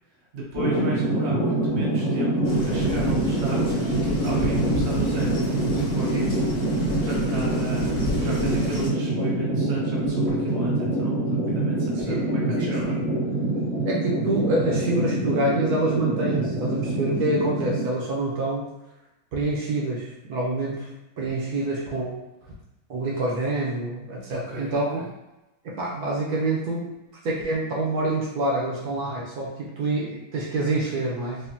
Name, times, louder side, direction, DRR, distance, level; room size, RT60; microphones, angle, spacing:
voice 1, 0.3-12.9 21.4-21.8 24.3-24.8, right 1 dB, 45° right, -5 dB, 1.2 m, -35 dB
sound 1, 0.5-17.8, right 2 dB, 20° right, 1.3 m, -25 dB
sound 2, 2.4-8.9, left 1 dB, 65° left, 2.0 m, -33 dB
voice 2, 12.0-13.0 13.8-18.7 19.3-20.9 21.2-22.2 22.9-25.0 25.8-26.9 27.2-31.4, right 2 dB, 75° right, -4 dB, 1.4 m, -27 dB
5.3 x 2.2 x 2.8 m, 0.95 s
omnidirectional pair, 1.7 m